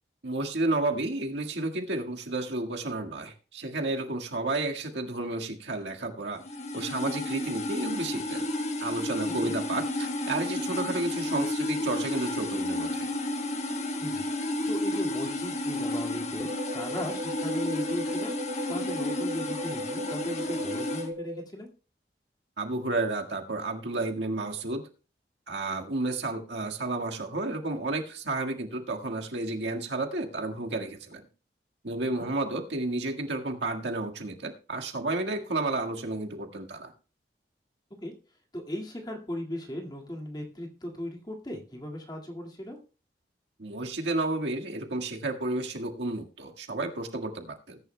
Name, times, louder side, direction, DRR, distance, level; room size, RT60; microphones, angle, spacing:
voice 1, 0.2-6.4 6.7-8.5 8.8-13.1 22.6-24.8 25.5-31.2 31.8-36.9 43.6-47.8, right 2 dB, 85° right, 2 dB, 1.7 m, -31 dB
sound 1, 6.4-21.1, left 1 dB, 40° left, 1.4 m, -32 dB
voice 2, 14.0-14.3 14.7-18.4 18.7-21.7 32.0-32.3 38.0-38.1 38.5-42.8, left 1 dB, 20° left, 1 dB, 2.0 m, -37 dB
sound 2, 16.4-21.4, equal, 25° right, 0.7 m, -37 dB
20.0 x 10.0 x 2.2 m, 0.35 s
head